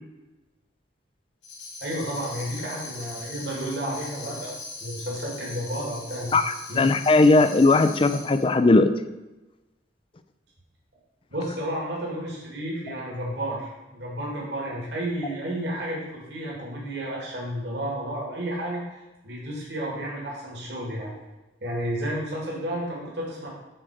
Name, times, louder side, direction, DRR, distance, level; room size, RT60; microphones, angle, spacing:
Tambourine, 1.4-8.5, left 3 dB, 80° left, 3.0 m, -40 dB
voice 1, 1.8-6.4 6.7-6.9 11.3-21.1 21.6-23.5, right 1 dB, 70° right, -4 dB, 2.3 m, -32 dB
voice 2, 6.3-8.9, left 2 dB, 30° left, 11 dB, 0.4 m, -18 dB
7.8 x 4.5 x 6.4 m, 1.1 s
head